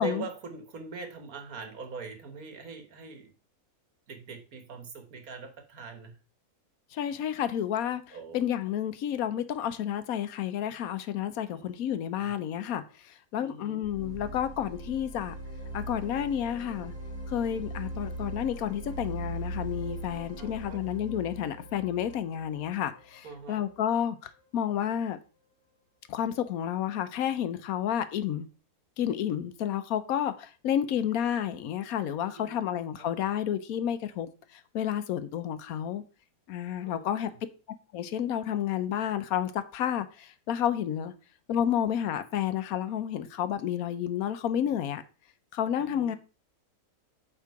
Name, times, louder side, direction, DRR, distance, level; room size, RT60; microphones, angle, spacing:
voice 1, 0.0-3.3 4.1-6.1 8.1-8.5 11.5-11.7 12.2-12.3 13.4-13.8 20.4-20.8 23.2-23.6 32.4-33.1 36.8-37.1 45.8-46.2, right 4 dB, 75° right, 1.7 m, -42 dB
voice 2, 6.9-15.4 15.7-16.9 17.3-25.2 26.1-28.5 29.0-36.0 36.5-37.3 37.9-41.1 41.5-45.0 45.5-46.2, left 10 dB, 80° left, 1.1 m, -30 dB
sound 1, 13.8-23.6, right 1 dB, 5° left, 2.7 m, -40 dB
8.7 x 3.8 x 4.7 m
omnidirectional pair, 1.5 m